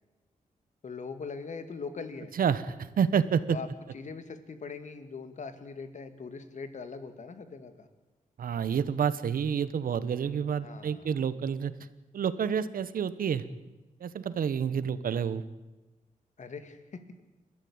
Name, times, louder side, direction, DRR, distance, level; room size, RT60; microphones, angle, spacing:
voice 1, 0.8-2.3 3.5-3.7 3.9-7.9 10.6-11.1 16.4-17.2, left 5 dB, 55° left, 9 dB, 2.3 m, -41 dB
voice 2, 2.4-3.4 8.4-11.7 12.1-13.4 14.0-15.4, right 7 dB, 80° right, 14 dB, 1.2 m, -29 dB
30.0 x 13.0 x 8.8 m, 1.1 s
wide cardioid pair, 110°, 15 cm